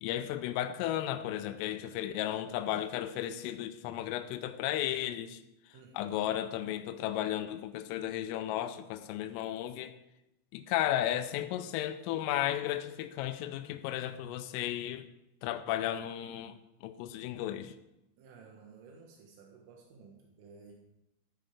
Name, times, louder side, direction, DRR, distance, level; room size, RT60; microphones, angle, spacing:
voice 1, 0.0-5.4 5.9-10.0 10.5-15.1 15.4-17.7, left 12 dB, 85° left, 3.3 m, -34 dB
voice 2, 5.7-6.3 18.2-20.8, right 5 dB, 80° right, 4.0 m, -54 dB
14.0 x 13.0 x 3.5 m
omnidirectional pair, 5.9 m